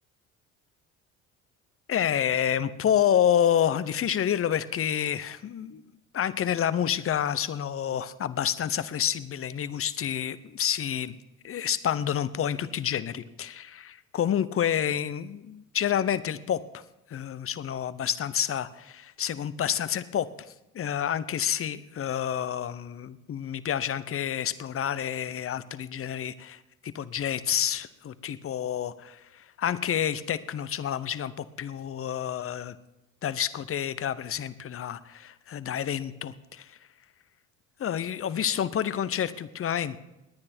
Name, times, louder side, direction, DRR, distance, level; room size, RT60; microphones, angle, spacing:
voice 1, 1.9-5.8 6.1-11.1 11.4-16.8 17.1-20.3 20.7-32.8 33.2-36.8 37.8-40.0, left 9 dB, 35° left, 16 dB, 0.8 m, -29 dB
19.5 x 9.7 x 4.4 m, 0.95 s
hypercardioid pair, 65°, 40 cm